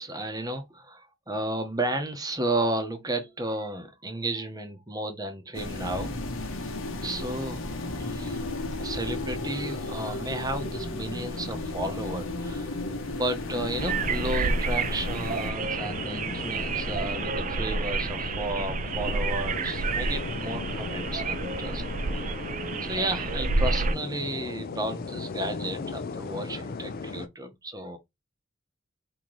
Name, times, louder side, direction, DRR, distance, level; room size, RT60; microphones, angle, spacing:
voice 1, 0.0-6.2 7.0-7.6 8.0-8.5 8.8-12.8 13.1-21.8 22.1-22.4 22.8-28.0, right 1 dB, 20° right, 0.8 m, -33 dB
sound 1, 5.5-15.5, left 2 dB, 80° left, 0.9 m, -34 dB
sound 2, 13.5-27.3, left 4 dB, 45° left, 0.4 m, -37 dB
sound 3, 13.8-23.9, right 4 dB, 40° right, 0.4 m, -30 dB
3.8 x 2.8 x 3.1 m
head